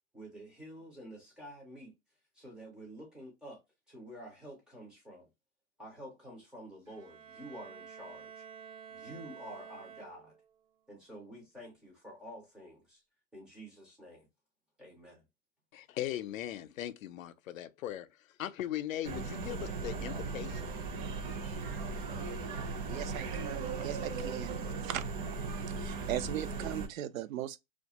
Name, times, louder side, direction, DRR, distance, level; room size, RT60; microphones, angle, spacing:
voice 1, 0.1-1.9 2.3-3.6 3.9-5.3 5.8-8.4 8.9-10.3 10.9-13.0 13.3-14.3 14.8-15.2, equal, ahead, 0.3 m, -49 dB
Bowed string instrument, 6.8-10.5, right 7 dB, 70° right, 1.2 m, -50 dB
voice 2, 15.7-18.1 18.4-20.7, left 12 dB, 80° left, 0.5 m, -39 dB
sound 1, 19.0-26.9, right 4 dB, 40° right, 0.6 m, -37 dB
voice 3, 22.9-24.6 24.8-25.0 25.8-27.6, right 12 dB, 85° right, 0.5 m, -38 dB
2.3 x 2.2 x 2.7 m
hypercardioid pair, 135°, 40 cm